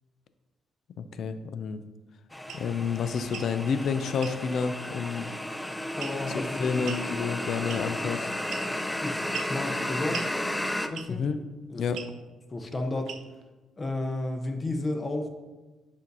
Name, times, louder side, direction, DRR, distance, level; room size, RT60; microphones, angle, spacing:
voice 1, 1.0-1.8 2.5-5.3 6.3-8.3 11.1-11.4 11.8-12.0, left 6 dB, 65° left, 11 dB, 0.4 m, -30 dB
sound 1, 2.3-10.9, left 1 dB, 5° left, 0.4 m, -33 dB
sound 2, 2.5-2.7 3.2-3.5 4.2-4.4 6.0-6.3 6.8-7.1 7.7-8.0 8.5-8.9 9.3-9.6 10.1-10.3 10.9-11.2 11.9-12.1 13.1-13.4, right 7 dB, 75° right, 0.5 m, -39 dB
voice 2, 5.9-6.7 9.0-10.3 10.9-11.2 11.7-11.8 12.5-13.1 13.8-15.3, left 2 dB, 25° left, 5 dB, 0.8 m, -32 dB
7.3 x 2.6 x 5.3 m, 1.2 s
cardioid pair, 90°, 0 cm